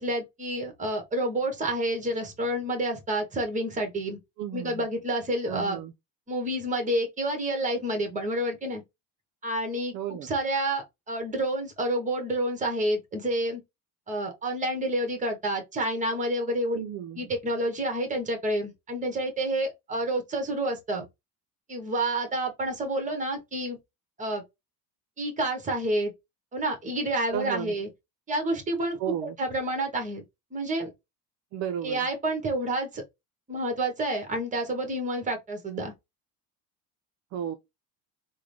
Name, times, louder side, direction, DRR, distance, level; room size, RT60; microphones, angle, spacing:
voice 1, 0.0-4.2 4.5-5.8 6.3-8.8 9.4-13.6 14.1-16.8 17.2-21.0 21.7-23.8 24.2-24.4 25.2-26.1 26.5-27.9 28.3-30.2 30.5-30.9 31.8-33.0 33.5-35.9, right 1 dB, 25° right, 1.3 m, -29 dB
voice 2, 4.4-4.9 5.5-5.9 9.9-10.3 16.7-17.3 27.3-27.7 29.0-29.4 31.5-32.1 37.3-37.6, right 9 dB, 60° right, 0.5 m, -33 dB
3.6 x 2.2 x 3.2 m
cardioid pair, 130°, 32 cm